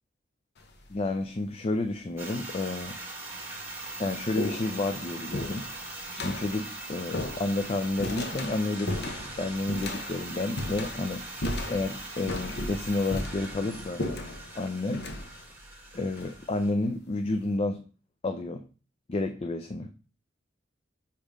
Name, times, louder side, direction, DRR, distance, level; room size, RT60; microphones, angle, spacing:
sound 1, 0.6-1.0 2.0-2.1 2.9-3.0 3.4-16.9, left 1 dB, 60° left, 0.9 m, -37 dB
voice 1, 0.9-2.9 4.0-5.7 6.1-11.2 11.7-14.0 14.6-15.0 16.0-17.8 18.2-18.6 19.1-19.9, left 2 dB, 30° left, 7 dB, 0.4 m, -30 dB
sound 2, 2.2-16.7, right 2 dB, 10° right, 1.4 m, -41 dB
5.3 x 4.2 x 5.0 m, 0.37 s
head